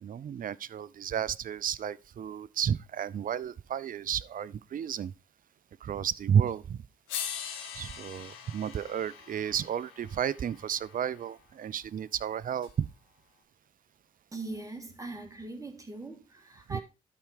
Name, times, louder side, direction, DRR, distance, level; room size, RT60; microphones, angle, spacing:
voice 1, 0.0-5.1 5.8-6.8 7.8-12.9 16.7-16.8, right 8 dB, 45° right, 0.6 m, -32 dB
sound 1, 6.5-6.6 7.1-11.3 12.6-12.7, left 8 dB, 75° left, 1.5 m, -42 dB
voice 2, 14.3-16.8, right 2 dB, 15° right, 3.1 m, -41 dB
12.0 x 4.7 x 4.8 m
hypercardioid pair, 45°, 19 cm